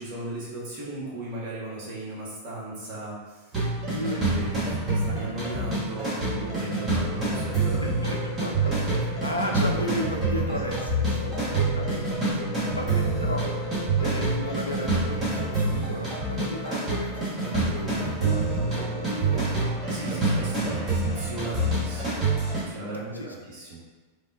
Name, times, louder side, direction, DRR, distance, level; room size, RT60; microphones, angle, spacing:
voice 1, 0.0-3.6 4.2-8.4 8.8-9.2 10.5-10.6 19.9-22.2 22.6-23.8, right 2 dB, 45° right, -6 dB, 1.0 m, -37 dB
sound 1, 3.5-22.6, right 2 dB, 25° right, 1.1 m, -27 dB
voice 2, 3.9-4.3 7.8-8.8 9.2-12.4 12.8-13.5 14.0-19.7 23.1-23.3, left 1 dB, 85° left, 1 dB, 0.4 m, -35 dB
sound 2, 5.6-17.5, equal, 50° left, 1.0 m, -39 dB
3.4 x 2.1 x 2.6 m, 1.3 s
figure-of-eight pair, 90°, 0 cm